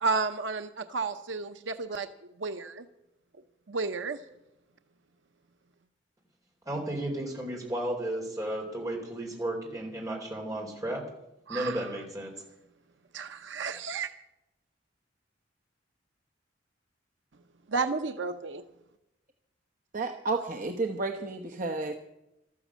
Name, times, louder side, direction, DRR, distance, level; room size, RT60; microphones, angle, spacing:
voice 1, 0.0-2.1 2.4-2.9 3.7-4.2 11.5-11.8 13.1-14.1 17.7-18.6, right 4 dB, 75° right, 8 dB, 0.8 m, -32 dB
voice 2, 6.7-11.0 11.5-12.3, right 1 dB, 20° right, 0 dB, 4.2 m, -33 dB
voice 3, 19.9-22.0, right 3 dB, 45° right, 3 dB, 1.0 m, -31 dB
13.5 x 13.5 x 7.5 m, 0.89 s
head